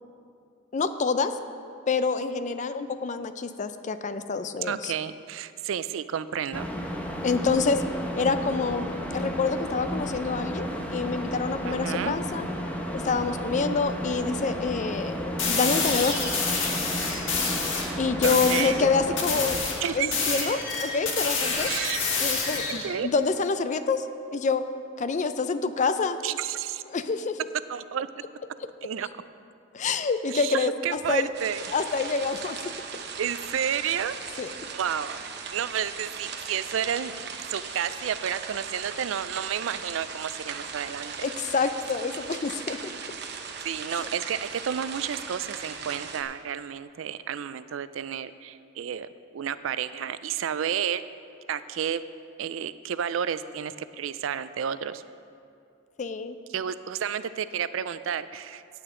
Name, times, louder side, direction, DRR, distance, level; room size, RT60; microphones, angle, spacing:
voice 1, 0.7-1.3 1.9-4.9 7.2-7.8 8.2-12.5 12.9-16.2 18.0-21.7 22.2-24.1 24.3-24.7 25.0-26.2 26.9-27.4 29.7-31.3 31.7-32.7 34.4-34.5 41.2-42.9 44.0-44.1 56.0-56.4, left 4 dB, 40° left, 11 dB, 0.5 m, -27 dB
voice 2, 4.6-6.7 11.7-12.1 18.2-18.9 19.8-20.2 21.7-22.0 22.7-23.1 26.2-26.8 27.7-28.1 28.8-29.1 30.3-31.6 33.2-34.1 34.7-35.2 35.5-41.1 43.6-49.1 49.3-51.0 51.5-52.0 52.4-55.0 56.5-58.6, right 8 dB, 80° right, 14 dB, 0.4 m, -31 dB
sound 1, 6.5-19.6, equal, 10° left, 0.9 m, -33 dB
sound 2, 15.4-17.9 18.2-18.7 19.2-22.9, left 4 dB, 70° left, 1.7 m, -27 dB
sound 3, 31.3-46.2, right 6 dB, 60° right, 0.8 m, -38 dB
15.0 x 8.8 x 3.8 m, 2.5 s
head